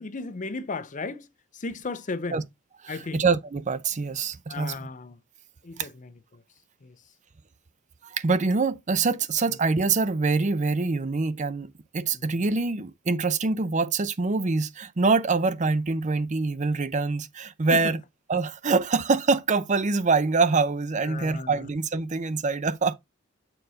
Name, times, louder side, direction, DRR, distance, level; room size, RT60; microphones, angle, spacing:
voice 1, 0.0-2.4 2.9-3.2 4.5-5.2 5.6-6.4 6.8-7.1 9.5-9.6 12.1-12.4 17.7-18.0 21.0-21.7, left 3 dB, 40° left, 0.6 m, -35 dB
voice 2, 3.1-4.7 8.1-18.0 18.3-22.9, right 4 dB, 35° right, 0.6 m, -25 dB
6.8 x 4.0 x 4.0 m
head